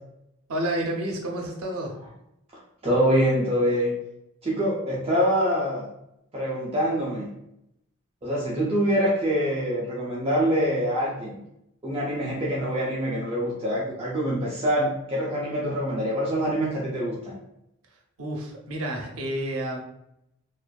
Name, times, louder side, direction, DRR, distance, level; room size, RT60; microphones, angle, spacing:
voice 1, 0.5-1.9 18.2-19.8, right 1 dB, 85° right, 1 dB, 0.6 m, -30 dB
voice 2, 2.8-3.9 4.4-5.9 6.3-7.3 8.2-11.4 11.8-17.3, equal, 25° right, -6 dB, 0.4 m, -25 dB
2.4 x 2.4 x 2.2 m, 0.80 s
head